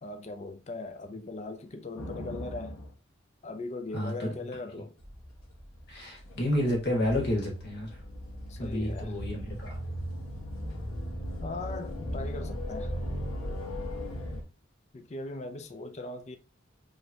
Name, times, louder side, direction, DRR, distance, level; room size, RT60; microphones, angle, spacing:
voice 1, 0.0-2.8 3.4-5.0 8.5-9.2 11.4-12.9 14.9-16.4, left 2 dB, 30° left, 0.4 m, -39 dB
sound 1, 1.9-2.9 5.0-14.4, equal, 90° left, 1.4 m, -37 dB
voice 2, 3.9-4.3 5.9-8.0 8.6-9.8, left 1 dB, 50° left, 1.6 m, -30 dB
4.8 x 3.1 x 2.8 m
head